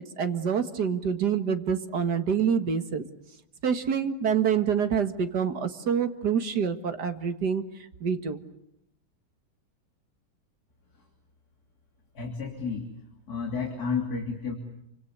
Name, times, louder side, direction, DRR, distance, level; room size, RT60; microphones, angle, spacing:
voice 1, 0.2-3.1 3.6-7.6 8.0-8.4, right 7 dB, 55° right, 8 dB, 2.3 m, -26 dB
voice 2, 12.2-12.9 13.3-14.5, left 5 dB, 45° left, 2 dB, 3.6 m, -31 dB
28.5 x 26.0 x 8.1 m, 0.77 s
omnidirectional pair, 2.3 m